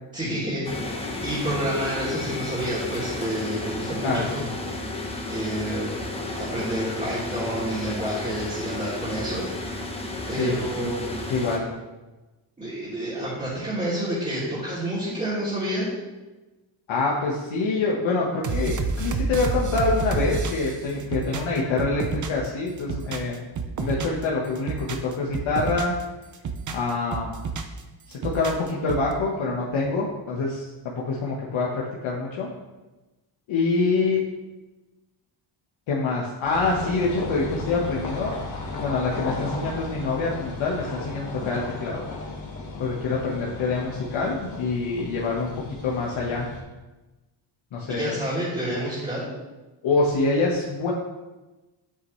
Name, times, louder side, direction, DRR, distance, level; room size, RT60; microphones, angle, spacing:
voice 1, 0.1-0.7 1.2-4.4 5.3-6.0 6.3-9.5 10.3-11.0 12.6-15.9 47.9-49.3, right 1 dB, 15° right, -10 dB, 3.0 m, -29 dB
sound 1, 0.6-11.6, left 2 dB, 10° left, 0.9 m, -32 dB
voice 2, 4.0-4.5 10.4-10.9 11.3-11.7 16.9-23.4 23.8-25.9 26.7-27.4 28.2-32.5 33.5-34.2 35.9-38.3 38.8-42.0 42.8-45.5 45.8-46.5 47.7-48.1 49.8-50.9, left 3 dB, 75° left, -3 dB, 1.5 m, -26 dB
sound 2, 18.4-22.5 22.8-24.2 24.6-26.0 26.3-27.8 28.1-29.1, right 4 dB, 40° right, 0.8 m, -29 dB
sound 3, 36.4-46.6, left 2 dB, 35° left, 1.9 m, -35 dB
9.6 x 8.4 x 3.2 m, 1.1 s
cardioid pair, 145°, 48 cm